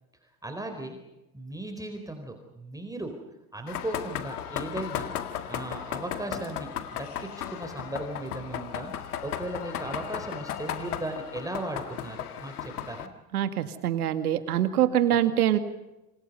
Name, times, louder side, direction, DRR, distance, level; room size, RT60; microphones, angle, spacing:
voice 1, 0.4-1.0 1.3-3.1 3.5-5.1 5.5-13.1, right 1 dB, 10° right, 4 dB, 4.2 m, -37 dB
sound 1, 3.7-13.1, left 10 dB, 90° left, 2.0 m, -36 dB
voice 2, 13.3-15.6, right 11 dB, 90° right, 10 dB, 2.2 m, -24 dB
27.5 x 27.0 x 5.5 m, 0.99 s
hypercardioid pair, 85°, 44 cm